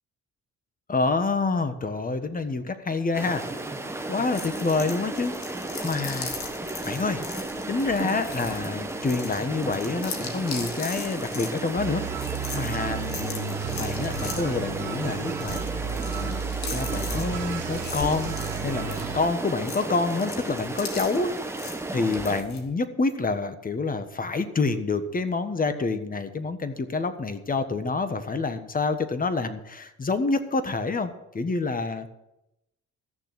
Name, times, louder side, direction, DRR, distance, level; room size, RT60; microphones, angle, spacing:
voice 1, 0.9-3.4 4.1-5.3 5.8-6.3 6.8-7.2 7.7-15.6 16.1-16.4 16.7-18.4 18.6-32.1, left 3 dB, 30° left, 10 dB, 1.4 m, -27 dB
sound 1, 3.1-22.4, right 2 dB, 10° right, 1.3 m, -34 dB
sound 2, 4.3-22.6, left 5 dB, 65° left, 2.4 m, -40 dB
sound 3, 11.8-19.3, right 8 dB, 90° right, 1.2 m, -33 dB
14.0 x 7.0 x 7.7 m, 0.89 s
cardioid pair, 90°, 30 cm